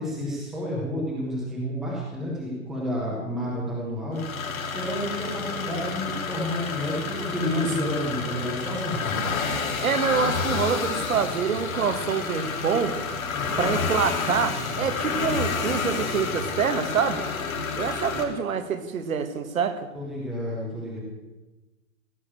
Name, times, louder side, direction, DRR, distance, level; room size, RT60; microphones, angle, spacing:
voice 1, 0.0-9.2 13.3-13.7 19.9-21.0, left 1 dB, ahead, -4 dB, 0.7 m, -30 dB
sound 1, 4.1-18.2, left 5 dB, 80° left, 3.1 m, -29 dB
voice 2, 9.8-13.0 13.6-17.2 17.7-19.9, right 6 dB, 80° right, 9 dB, 1.9 m, -26 dB
16.5 x 6.4 x 8.8 m, 1.1 s
hypercardioid pair, 175°, 40 cm